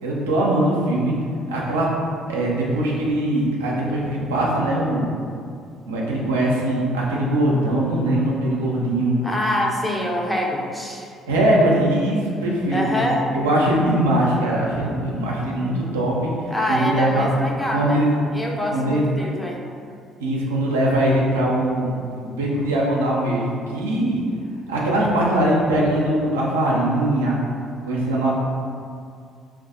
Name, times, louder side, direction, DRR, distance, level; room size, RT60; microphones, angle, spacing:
voice 1, 0.0-1.1 1.5-1.9 2.3-5.1 5.9-9.1 11.3-13.0 13.3-16.3 16.7-17.3 17.7-18.2 18.7-19.0 20.2-21.9 22.2-24.2 24.7-27.4 27.8-28.3, right 1 dB, 85° right, -4 dB, 0.4 m, -21 dB
voice 2, 9.2-11.1 12.7-13.2 16.5-18.1 18.3-19.6, equal, 10° left, -1 dB, 0.6 m, -25 dB
2.6 x 2.3 x 3.6 m, 2.3 s
hypercardioid pair, 55°, 0 cm